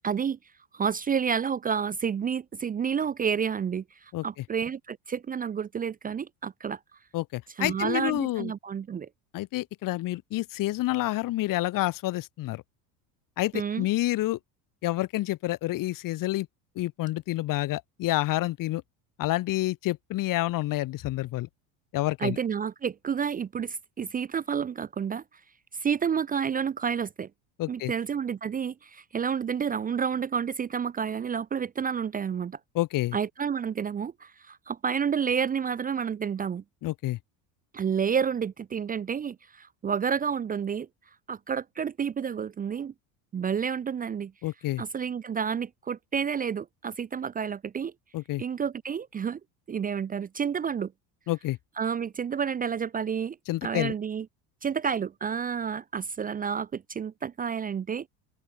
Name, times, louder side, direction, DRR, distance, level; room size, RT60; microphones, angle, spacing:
voice 1, 0.0-0.4 0.7-6.8 7.6-9.1 13.5-13.9 22.2-25.2 25.7-27.3 27.7-32.6 33.1-36.6 37.7-40.9 41.3-42.9 43.3-44.3 44.8-47.9 48.4-49.4 49.7-50.9 51.8-53.4 53.6-54.3 54.6-58.1, right 7 dB, 20° right, 0.7 m, -30 dB
voice 2, 7.1-8.5 9.3-12.6 13.4-14.4 14.8-16.5 16.8-18.8 19.2-21.5 21.9-22.4 27.6-27.9 32.7-33.2 36.8-37.2 44.4-44.8 48.1-48.4 51.3-51.6 53.5-54.0, left 17 dB, 55° left, 2.0 m, -28 dB
open air
cardioid pair, 130°, 40 cm